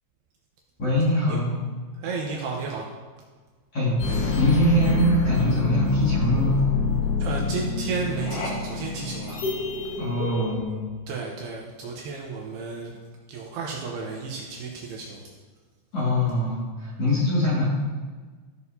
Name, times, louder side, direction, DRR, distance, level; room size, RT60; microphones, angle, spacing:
voice 1, 0.8-1.6 3.7-4.0 4.4-6.6 10.0-10.8 15.9-17.7, equal, 45° left, -8 dB, 2.3 m, -23 dB
voice 2, 1.9-2.9 7.2-9.5 11.1-13.0 13.3-15.2, right 4 dB, 75° right, -1 dB, 2.6 m, -33 dB
sound 1, 4.0-10.6, left 4 dB, 60° left, 2.4 m, -27 dB
15.0 x 6.4 x 2.7 m, 1.4 s
omnidirectional pair, 5.3 m